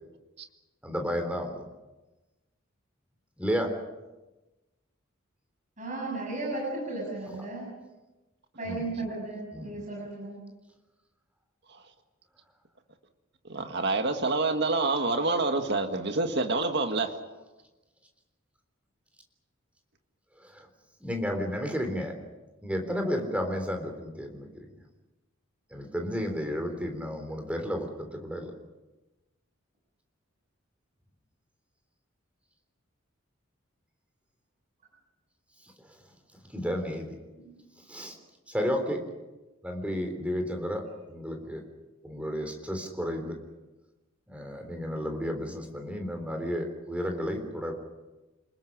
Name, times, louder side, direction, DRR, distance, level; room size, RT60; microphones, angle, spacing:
voice 1, 0.8-1.6 3.4-3.7 8.6-8.9 9.5-9.8 20.4-20.7 21.0-22.1 22.6-24.7 25.7-28.5 35.8-35.9 36.5-37.1 37.9-38.2 38.5-39.0 39.6-41.6 42.0-43.4 44.3-47.7, equal, 5° right, 4 dB, 3.7 m, -32 dB
voice 2, 5.8-7.7 8.6-10.4 37.4-37.5, right 2 dB, 35° right, -2 dB, 7.7 m, -35 dB
voice 3, 13.5-17.1, right 3 dB, 55° right, 5 dB, 1.8 m, -27 dB
29.0 x 20.5 x 6.4 m, 1.1 s
head